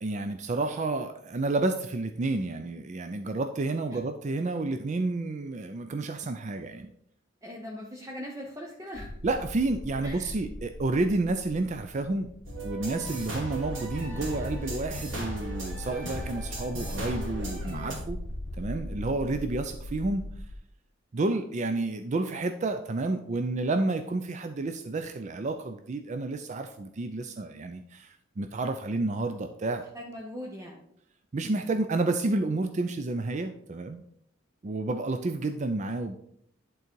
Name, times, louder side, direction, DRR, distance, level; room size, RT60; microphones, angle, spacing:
voice 1, 0.0-6.9 9.2-12.3 12.6-18.2 18.6-20.2 21.1-29.8 31.3-34.0 34.6-36.2, right 2 dB, 35° right, 7 dB, 0.4 m, -30 dB
voice 2, 7.4-9.1 10.0-10.3 29.9-30.8, equal, 15° right, -2 dB, 0.9 m, -40 dB
sound 1, 8.9-20.6, left 1 dB, 60° left, 0.9 m, -40 dB
sound 2, 12.5-18.0, equal, 80° right, 2.3 m, -36 dB
11.0 x 3.9 x 4.6 m, 0.71 s
head